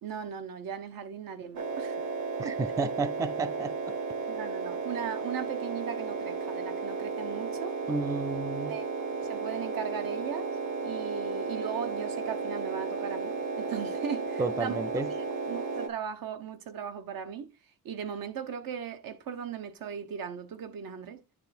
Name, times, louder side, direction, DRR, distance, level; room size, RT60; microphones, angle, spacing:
voice 1, 0.0-2.0 2.4-2.6 4.3-7.8 8.7-8.9 9.3-10.6 10.8-14.8 15.5-17.5 17.8-21.2, right 8 dB, 80° right, 1.1 m, -38 dB
sound 1, 1.6-15.9, right 4 dB, 55° right, 1.2 m, -34 dB
voice 2, 2.4-3.9 7.9-8.8 14.4-15.1, right 3 dB, 10° right, 0.3 m, -32 dB
9.5 x 3.3 x 4.3 m
wide cardioid pair, 165°, 34 cm